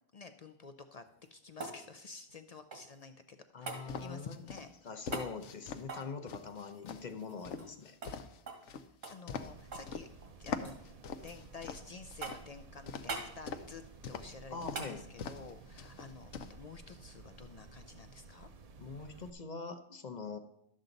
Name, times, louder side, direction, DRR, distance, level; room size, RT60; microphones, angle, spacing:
voice 1, 0.1-1.0 1.3-4.7 7.4-7.9 8.7-10.1 10.4-10.9 11.2-18.5, left 4 dB, 60° left, 9 dB, 0.4 m, -51 dB
sound 1, 1.0-3.1 3.7-3.9 5.1-5.3 5.8-7.8 8.0-8.2 8.5-8.7 9.0-9.9 10.2-10.8 11.3-11.8 12.2-12.6 13.1-13.3 14.7-15.0 17.3-17.4, right 3 dB, 85° right, 2.0 m, -44 dB
voice 2, 3.5-4.4 4.8-8.0 14.5-15.0 18.8-20.4, left 4 dB, 45° left, 8 dB, 0.8 m, -43 dB
sound 2, 3.9-5.8 6.3-10.1 10.5-12.4 12.9-13.7 14.0-14.3 14.6-14.8 15.2-15.5 15.8-16.5, left 6 dB, 75° left, 1.0 m, -42 dB
sound 3, 9.3-19.3, right 3 dB, 45° right, 0.5 m, -54 dB
12.0 x 7.5 x 3.9 m, 0.80 s
omnidirectional pair, 1.3 m